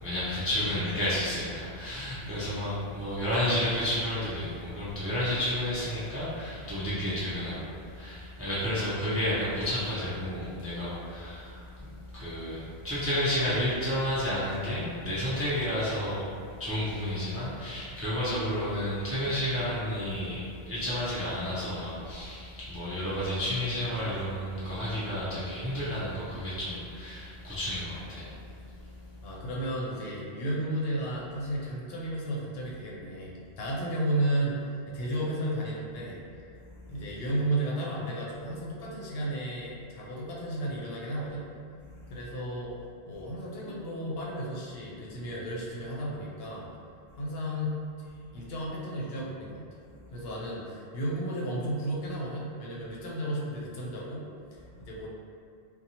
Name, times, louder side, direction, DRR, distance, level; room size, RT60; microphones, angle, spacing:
voice 1, 0.0-16.3 16.6-28.3, left 1 dB, 20° right, -11 dB, 0.4 m, -31 dB
voice 2, 2.2-2.5 29.2-36.2 36.9-41.5 42.1-42.7 43.1-46.7 47.2-49.6 50.1-55.1, right 1 dB, 70° left, -5 dB, 0.8 m, -33 dB
2.7 x 2.2 x 2.8 m, 2.3 s
omnidirectional pair, 1.1 m